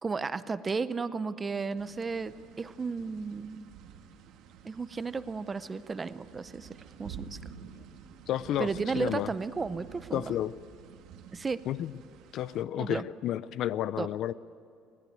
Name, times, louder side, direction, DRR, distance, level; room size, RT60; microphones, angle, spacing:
voice 1, 0.0-3.7 4.6-7.4 8.6-10.3 11.3-11.6 12.8-13.0 14.0-14.1, right 4 dB, 15° right, 14 dB, 0.6 m, -34 dB
sound 1, 1.8-12.6, right 7 dB, 60° right, 1.6 m, -49 dB
voice 2, 8.3-8.7 9.0-9.3 10.1-10.5 11.7-11.9 12.3-14.3, left 12 dB, 50° left, 17 dB, 0.5 m, -31 dB
21.0 x 19.0 x 9.3 m, 2.4 s
cardioid pair, 170°, 0 cm